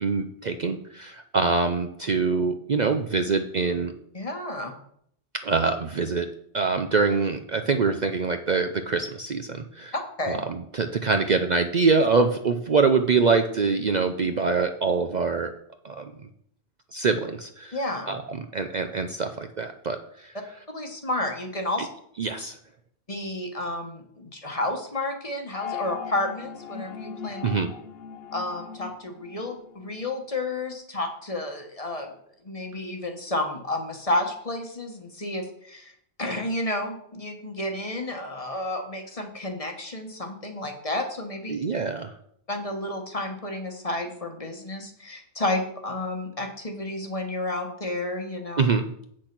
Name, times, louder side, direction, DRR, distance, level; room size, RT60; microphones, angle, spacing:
voice 1, 0.0-3.9 5.4-6.3 6.5-9.9 10.3-15.5 15.8-16.1 16.9-17.8 18.1-20.0 20.2-20.3 22.2-22.6 27.4-27.7 41.5-42.1 48.6-48.8, right 4 dB, 45° right, 6 dB, 0.7 m, -24 dB
voice 2, 4.1-4.7 9.9-10.4 17.7-18.2 20.7-21.9 23.1-27.5 28.3-32.1 32.4-41.6 42.5-48.6, left 1 dB, 30° left, 4 dB, 1.3 m, -31 dB
sound 1, 25.5-30.1, left 8 dB, 65° left, 0.9 m, -39 dB
8.3 x 6.3 x 6.0 m, 0.69 s
omnidirectional pair, 1.2 m